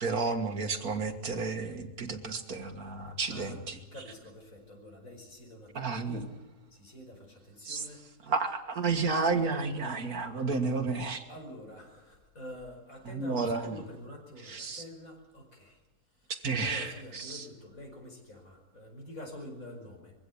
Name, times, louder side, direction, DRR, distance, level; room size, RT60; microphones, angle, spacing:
voice 1, 0.0-3.8 5.7-6.2 7.7-7.8 8.3-11.2 13.1-13.8 14.5-14.8 16.4-17.4, right 4 dB, 70° right, 6 dB, 2.1 m, -31 dB
voice 2, 3.9-6.3 6.7-8.0 11.3-15.8 16.2-16.3 16.6-20.1, left 1 dB, 60° left, 2 dB, 5.6 m, -47 dB
23.0 x 16.0 x 8.5 m, 1.1 s
omnidirectional pair, 1.7 m